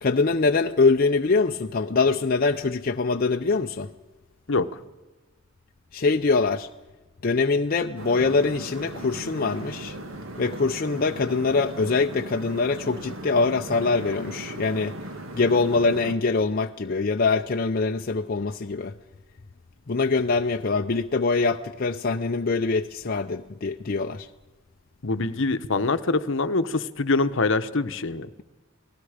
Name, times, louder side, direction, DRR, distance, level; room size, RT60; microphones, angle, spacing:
voice 1, 0.0-3.9 5.9-6.7 7.2-10.0 10.4-14.9 15.3-18.9 19.9-24.3, left 4 dB, 45° left, 0.6 m, -23 dB
sound 1, 8.0-16.1, right 1 dB, 90° right, 1.8 m, -38 dB
voice 2, 25.0-28.3, left 3 dB, 65° left, 1.0 m, -24 dB
29.5 x 19.0 x 5.0 m
head